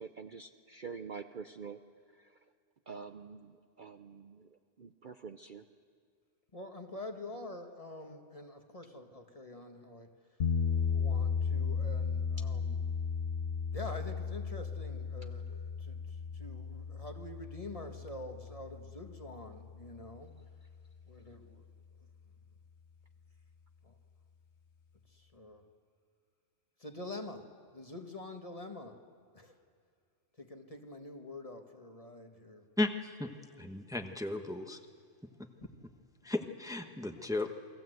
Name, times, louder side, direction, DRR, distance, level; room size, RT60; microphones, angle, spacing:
voice 1, 0.0-1.8 2.1-2.3 2.9-4.5 4.8-5.6, right 5 dB, 45° right, 7 dB, 0.8 m, -46 dB
voice 2, 6.5-10.1 10.9-12.8 13.7-20.4 21.0-21.7 23.8-24.0 25.1-25.6 26.8-29.0 29.3-29.6 30.4-32.7, left 2 dB, 30° left, 4 dB, 1.6 m, -46 dB
sound 1, 10.4-20.4, left 6 dB, 60° left, 1.4 m, -35 dB
voice 3, 32.8-33.3 33.6-34.8 36.2-37.5, left 2 dB, 5° right, 5 dB, 1.1 m, -35 dB
29.0 x 21.0 x 7.9 m, 2.2 s
omnidirectional pair, 1.3 m